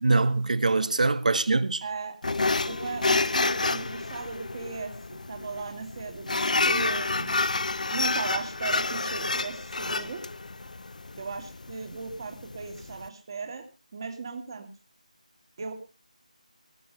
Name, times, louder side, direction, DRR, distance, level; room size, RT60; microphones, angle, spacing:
voice 1, 0.0-1.8, right 3 dB, 65° right, 1.4 m, -23 dB
voice 2, 1.8-2.1 2.7-4.9 5.3-7.3 7.9-10.2 11.2-13.7 13.9-14.7 15.6-15.7, right 4 dB, 35° right, 2.5 m, -36 dB
sound 1, 2.2-13.1, left 3 dB, 70° left, 0.9 m, -29 dB
20.5 x 7.3 x 6.6 m
figure-of-eight pair, 170°, 4 cm